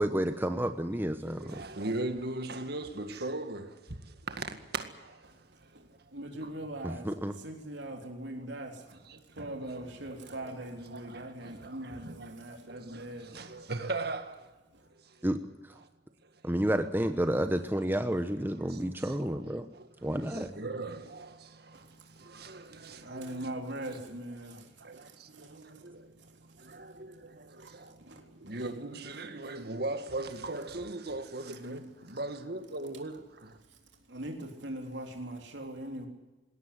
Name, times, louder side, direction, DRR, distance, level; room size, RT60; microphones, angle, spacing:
voice 1, 0.0-1.6 6.8-7.3 15.2-15.4 16.4-19.7 20.0-20.5, right 1 dB, 10° right, 1.0 m, -30 dB
voice 2, 1.2-6.0 6.4-6.8 7.9-8.5 8.8-14.5 14.9-15.3 15.8-15.9 16.2-16.3 18.7-33.6, right 2 dB, 60° right, 2.0 m, -40 dB
voice 3, 6.1-7.1 7.4-9.0 9.4-13.3 23.0-24.6 28.1-28.2 31.5-31.8 34.1-36.1, right 1 dB, 75° right, 3.6 m, -40 dB
20.5 x 17.5 x 9.8 m
head